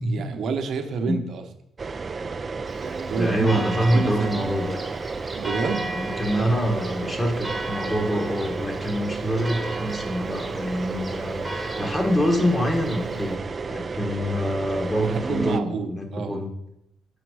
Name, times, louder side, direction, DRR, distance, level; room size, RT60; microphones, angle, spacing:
voice 1, 0.0-1.4 2.8-4.5 5.3-5.9 15.0-16.4, right 4 dB, 60° right, 6 dB, 0.9 m, -29 dB
sound 1, 1.8-15.6, right 4 dB, 35° right, 0.4 m, -32 dB
voice 2, 2.7-4.8 5.9-13.4 13.7-16.5, equal, 20° left, 2 dB, 1.3 m, -25 dB
Church bell, 2.7-13.4, right 1 dB, 10° right, 1.1 m, -36 dB
7.0 x 5.1 x 4.8 m, 0.83 s
cardioid pair, 100°, 0 cm